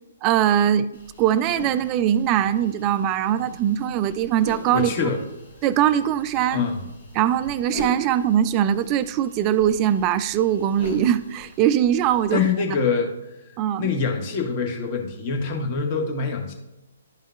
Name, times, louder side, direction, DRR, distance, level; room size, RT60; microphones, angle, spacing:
voice 1, 0.2-0.9 1.2-4.9 5.6-6.6 7.1-12.4 13.6-13.9, right 10 dB, 25° right, 0.3 m, -21 dB
sound 1, 0.9-12.5, left 1 dB, 65° left, 1.8 m, -41 dB
voice 2, 4.7-5.2 6.5-6.8 12.3-13.1 13.8-16.5, left 5 dB, 35° left, 1.3 m, -24 dB
11.5 x 5.4 x 2.2 m
figure-of-eight pair, 130°, 0 cm